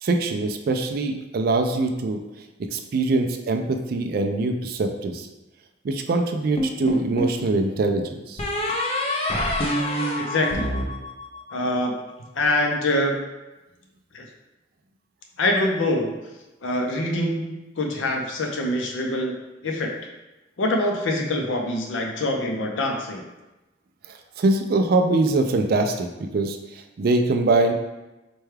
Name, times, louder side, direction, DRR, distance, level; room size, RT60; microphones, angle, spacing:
voice 1, 0.0-2.2 2.7-5.3 5.8-8.4 24.4-26.1 26.3-26.6 27.0-27.7, right 2 dB, 50° right, 5 dB, 0.3 m, -23 dB
sound 1, 6.6-7.4 8.4-11.7, left 1 dB, 30° left, 0.5 m, -26 dB
voice 2, 10.2-10.8 11.5-11.9 12.4-13.3 14.1-14.3 15.4-16.1 16.6-19.3 19.6-19.9 20.6-23.2, left 1 dB, 80° left, 2 dB, 0.6 m, -24 dB
4.4 x 2.3 x 3.2 m, 1.0 s
head